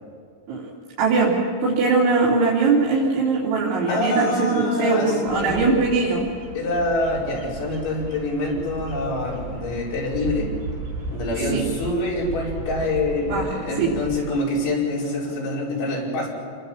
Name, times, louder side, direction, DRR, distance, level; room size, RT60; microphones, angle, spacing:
voice 1, 1.0-1.3 1.6-6.2 11.5-11.6 13.3-13.5 13.8-13.9, right 4 dB, 80° right, -5 dB, 5.4 m, -21 dB
voice 2, 3.9-5.7 6.5-10.5 11.1-16.3, left 1 dB, 80° left, -4 dB, 7.3 m, -25 dB
Bird vocalization bird call bird song, 5.3-14.3, right 2 dB, 60° right, 5.8 m, -35 dB
28.0 x 21.0 x 7.3 m, 2.2 s
omnidirectional pair, 5.3 m